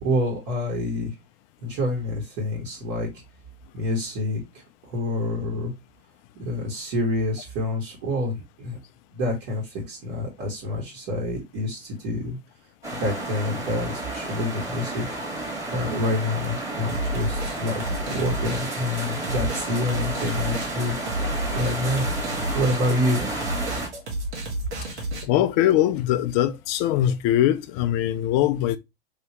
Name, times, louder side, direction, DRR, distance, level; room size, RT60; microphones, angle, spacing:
voice 1, 0.0-1.1 1.6-3.1 3.7-4.4 4.8-5.7 6.3-8.8 9.1-12.4 12.9-15.1 15.3-21.0 21.5-22.1 22.5-23.2, left 1 dB, 50° right, 1.6 m, -27 dB
sound 1, 12.8-23.9, right 2 dB, 10° right, 1.6 m, -31 dB
sound 2, 16.9-25.2, right 1 dB, 80° right, 1.5 m, -31 dB
voice 2, 25.2-28.8, left 12 dB, 40° left, 0.4 m, -22 dB
3.4 x 2.9 x 2.9 m
hypercardioid pair, 100°, 33 cm